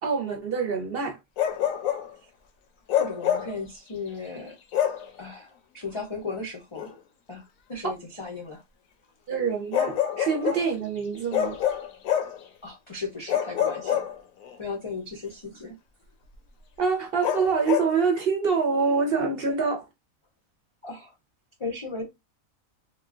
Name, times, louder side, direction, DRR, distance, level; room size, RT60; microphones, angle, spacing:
voice 1, 0.0-1.2 9.3-11.5 16.8-19.8, right 5 dB, 55° right, 0.7 m, -25 dB
Bark, 1.4-2.1 2.9-3.6 4.7-5.1 6.8-6.9 9.7-10.7 11.3-12.4 13.3-14.5 17.2-17.9, left 10 dB, 80° left, 1.0 m, -26 dB
voice 2, 2.9-4.6 5.2-6.9 7.3-8.6 12.6-14.1 14.6-15.8 19.5-19.6 20.8-21.1 21.6-22.0, left 4 dB, 55° left, 0.3 m, -36 dB
3.6 x 2.2 x 2.4 m
omnidirectional pair, 1.4 m